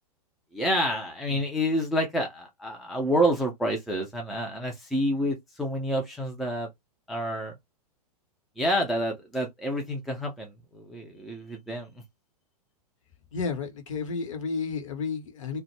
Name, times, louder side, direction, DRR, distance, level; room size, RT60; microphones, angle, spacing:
voice 1, 0.5-6.7 7.1-7.5 8.6-12.0, equal, ahead, 0.3 m, -28 dB
voice 2, 13.3-15.6, left 5 dB, 55° left, 0.8 m, -32 dB
2.1 x 2.0 x 3.0 m
figure-of-eight pair, 100°, 20 cm